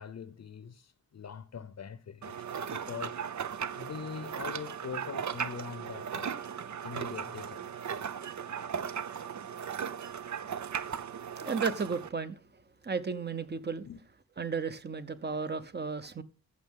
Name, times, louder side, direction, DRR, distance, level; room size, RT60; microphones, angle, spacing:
voice 1, 0.0-3.2 3.7-6.4 6.8-7.9 13.8-14.0, left 7 dB, 60° left, 0.7 m, -43 dB
sound 1, 2.2-12.1, right 7 dB, 70° right, 0.8 m, -37 dB
voice 2, 11.4-12.4 12.9-13.9 14.4-16.2, right 5 dB, 35° right, 0.9 m, -34 dB
15.0 x 6.4 x 3.7 m
wide cardioid pair, 110°, 30 cm